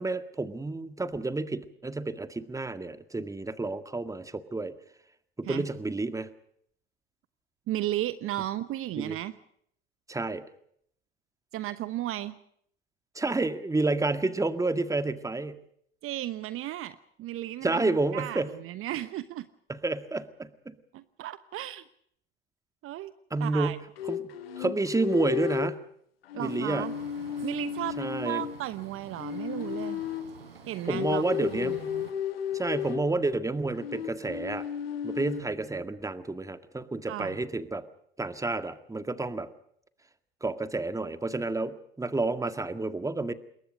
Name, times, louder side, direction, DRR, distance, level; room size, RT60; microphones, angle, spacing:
voice 1, 0.0-4.7 5.4-6.3 9.0-9.2 10.1-10.4 13.2-15.6 17.6-18.5 19.7-20.8 23.3-24.2 24.6-25.8 26.4-26.9 28.0-28.4 30.9-31.9 32.5-34.7 35.0-37.8 38.2-39.5 40.4-43.3, right 2 dB, 10° right, 11 dB, 1.9 m, -30 dB
voice 2, 7.7-9.4 11.5-12.4 16.0-19.5 20.9-21.9 22.8-23.1 23.4-23.8 26.3-26.9 27.4-30.0 30.7-32.1 37.1-37.4, right 14 dB, 45° right, 14 dB, 1.1 m, -35 dB
sound 1, 24.0-25.8 26.3-28.6 29.2-30.4 30.8-33.1 33.8-35.4, left 9 dB, 80° left, 1.9 m, -34 dB
sound 2, 26.4-32.1, right 5 dB, 85° right, 4.1 m, -49 dB
27.5 x 21.5 x 5.1 m, 0.67 s
hypercardioid pair, 70°, 30 cm